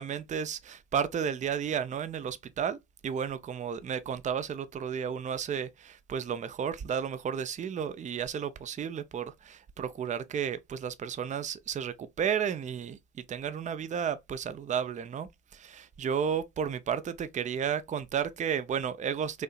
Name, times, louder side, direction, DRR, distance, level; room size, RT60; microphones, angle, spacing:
voice 1, 0.0-19.4, right 7 dB, 20° right, 0.4 m, -33 dB
4.1 x 2.8 x 2.3 m
hypercardioid pair, 55°, 38 cm